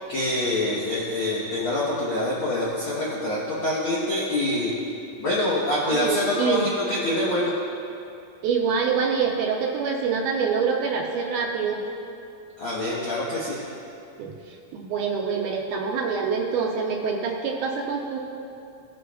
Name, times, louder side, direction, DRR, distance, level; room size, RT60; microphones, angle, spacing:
voice 1, 0.0-4.7 5.2-7.5 12.6-13.6, left 1 dB, 80° left, -6 dB, 1.1 m, -25 dB
voice 2, 5.9-6.6 8.4-11.8 14.2-18.2, right 5 dB, 75° right, 0 dB, 2.0 m, -26 dB
17.0 x 6.3 x 2.3 m, 2.6 s
omnidirectional pair, 4.0 m